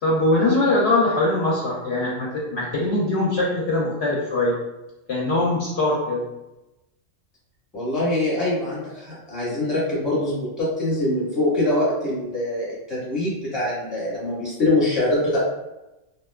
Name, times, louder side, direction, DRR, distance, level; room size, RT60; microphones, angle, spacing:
voice 1, 0.0-4.6 5.1-6.2, left 2 dB, 65° left, -5 dB, 0.7 m, -22 dB
voice 2, 7.7-15.4, left 1 dB, ahead, -8 dB, 0.8 m, -24 dB
2.5 x 2.2 x 2.2 m, 0.97 s
omnidirectional pair, 1.3 m